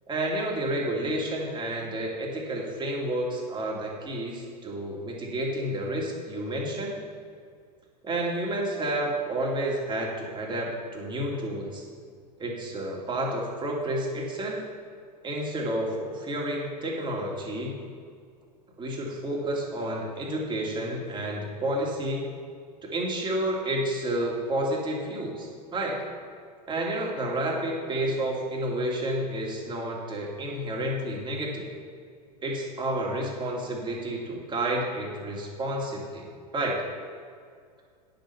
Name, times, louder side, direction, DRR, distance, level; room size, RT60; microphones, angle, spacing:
voice 1, 0.1-6.9 8.0-11.9 12.4-14.6 15.2-17.8 18.8-22.3 22.8-26.0 26.7-31.7 32.4-36.3 36.5-36.8, right 1 dB, 20° right, -2 dB, 2.4 m, -30 dB
10.0 x 6.8 x 5.7 m, 2.1 s
figure-of-eight pair, 85°, 21 cm